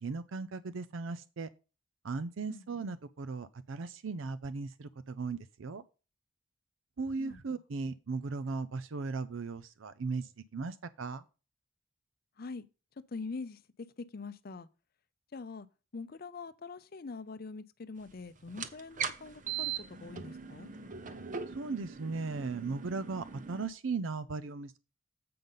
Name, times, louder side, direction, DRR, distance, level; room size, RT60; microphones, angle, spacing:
voice 1, 0.0-1.5 2.0-5.8 7.0-11.2 21.5-24.8, right 4 dB, 75° right, 0.5 m, -37 dB
voice 2, 7.2-7.6 12.4-12.6 13.1-13.6 14.0-14.7 15.3-15.7 15.9-20.7, left 4 dB, 50° left, 0.5 m, -44 dB
sound 1, 18.5-23.7, right 7 dB, 40° right, 0.7 m, -40 dB
7.7 x 5.2 x 5.5 m
head